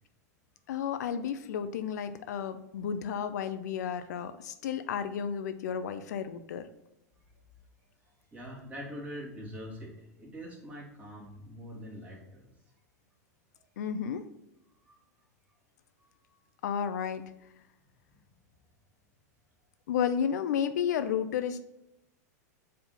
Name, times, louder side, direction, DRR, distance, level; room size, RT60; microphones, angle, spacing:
voice 1, 0.7-6.7 13.8-14.2 16.6-17.2 19.9-21.7, left 8 dB, 80° left, 10 dB, 0.5 m, -32 dB
voice 2, 8.3-12.5 14.8-14.9 16.0-16.4, equal, 15° right, -3 dB, 1.9 m, -44 dB
4.7 x 3.6 x 5.5 m, 0.86 s
hypercardioid pair, 130°, 9 cm